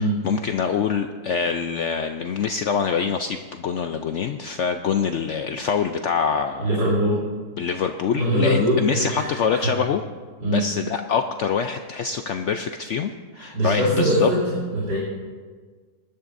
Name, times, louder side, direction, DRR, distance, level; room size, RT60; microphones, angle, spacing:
voice 1, 0.0-6.7 7.6-10.0 10.4-14.3, left 6 dB, 75° left, 6 dB, 0.6 m, -25 dB
voice 2, 6.6-7.2 8.1-9.7 10.4-10.6 13.4-15.0, equal, 80° right, -9 dB, 3.9 m, -22 dB
21.0 x 11.0 x 2.6 m, 1.5 s
omnidirectional pair, 1.8 m